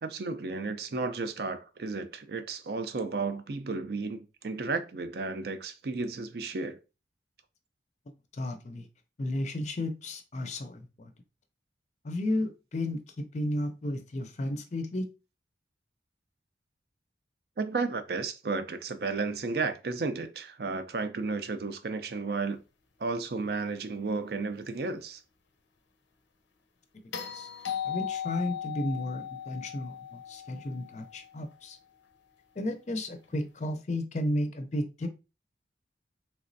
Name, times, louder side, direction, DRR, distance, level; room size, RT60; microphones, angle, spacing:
voice 1, 0.0-6.8 17.6-22.6 23.0-25.2, right 4 dB, 55° right, 0.4 m, -33 dB
voice 2, 8.3-8.9 9.2-11.1 12.0-15.1 27.3-27.5 27.8-31.8 32.6-35.1, left 1 dB, 40° left, 0.5 m, -33 dB
sound 1, 27.1-31.4 33.6-33.7, left 9 dB, 85° left, 0.6 m, -37 dB
3.4 x 2.9 x 2.6 m
head